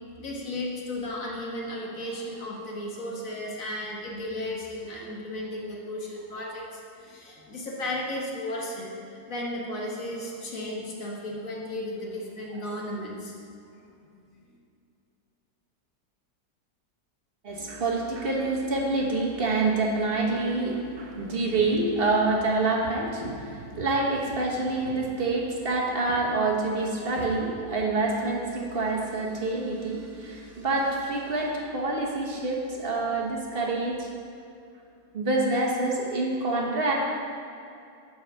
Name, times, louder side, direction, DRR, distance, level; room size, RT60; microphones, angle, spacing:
voice 1, 0.2-13.4 14.1-14.2, left 1 dB, 50° left, -2 dB, 1.8 m, -34 dB
voice 2, 17.4-34.1 35.1-36.9, right 2 dB, 40° right, -2 dB, 1.2 m, -27 dB
8.6 x 4.9 x 6.8 m, 2.4 s
omnidirectional pair, 1.8 m